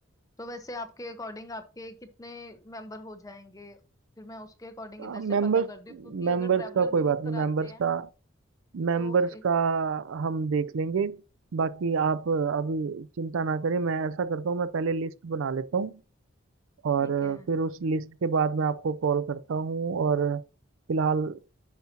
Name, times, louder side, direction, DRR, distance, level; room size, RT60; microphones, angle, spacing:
voice 1, 0.4-3.8 4.2-7.8 9.0-9.4 17.0-17.5, left 1 dB, 15° left, 0.8 m, -42 dB
voice 2, 5.0-5.7 6.1-8.1 8.7-11.2 11.5-15.9 16.8-20.4 20.9-21.4, right 5 dB, 75° right, 0.4 m, -27 dB
9.3 x 5.8 x 2.8 m
head